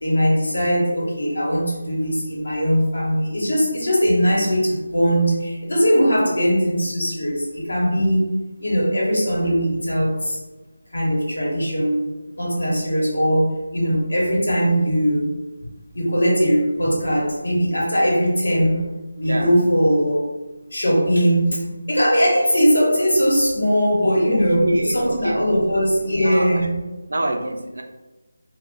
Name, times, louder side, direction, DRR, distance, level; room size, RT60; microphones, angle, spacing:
voice 1, 0.0-8.3 8.6-10.4 10.9-12.0 12.4-15.3 15.9-18.9 19.2-20.2 20.7-26.9, equal, 80° left, -4 dB, 1.2 m, -20 dB
voice 2, 19.2-19.6 24.3-25.8 26.2-26.6 27.1-27.8, right 1 dB, 70° right, 4 dB, 0.4 m, -26 dB
2.5 x 2.2 x 3.7 m, 1.1 s
figure-of-eight pair, 165°, 0 cm